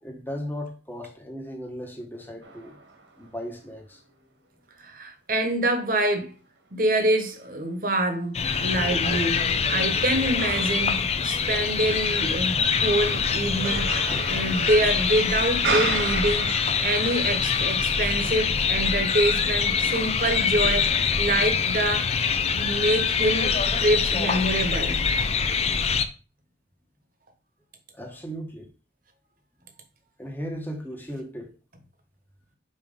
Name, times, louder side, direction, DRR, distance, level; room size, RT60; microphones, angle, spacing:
voice 1, 0.0-2.8 3.2-4.0 14.1-14.2 14.8-14.9 27.9-28.7 30.2-31.5, equal, 10° left, 1.2 m, -36 dB
sound 1, 2.4-3.3 3.8-3.9 7.1-7.2 8.5-17.4, right 4 dB, 85° right, 1.8 m, -35 dB
voice 2, 4.8-6.3 6.7-16.5 16.8-22.2 22.5-25.0, right 1 dB, 50° right, 1.3 m, -26 dB
sound 2, 8.3-26.0, left 6 dB, 35° left, 0.5 m, -24 dB
5.5 x 4.5 x 5.3 m
head